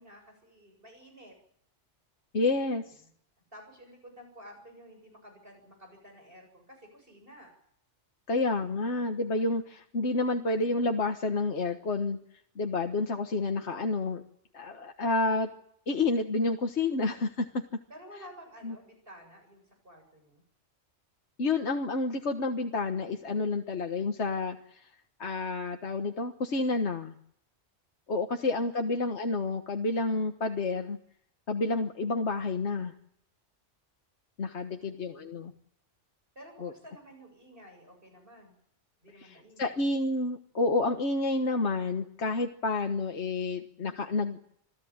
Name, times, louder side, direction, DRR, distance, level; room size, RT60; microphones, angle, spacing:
voice 1, 0.0-1.4 2.8-3.1 3.4-7.5 17.9-20.4 28.4-29.1 34.6-35.5 36.3-38.6 39.0-39.9, equal, 50° right, 3 dB, 7.8 m, -52 dB
voice 2, 2.3-2.8 8.3-12.2 12.6-14.2 14.5-15.5 15.9-17.6 18.6-18.7 21.4-24.9 25.2-27.1 28.1-31.0 31.5-32.9 34.4-35.5 36.6-36.7 39.6-44.4, left 3 dB, 70° left, 4 dB, 1.7 m, -29 dB
27.0 x 16.0 x 8.8 m, 0.70 s
omnidirectional pair, 1.2 m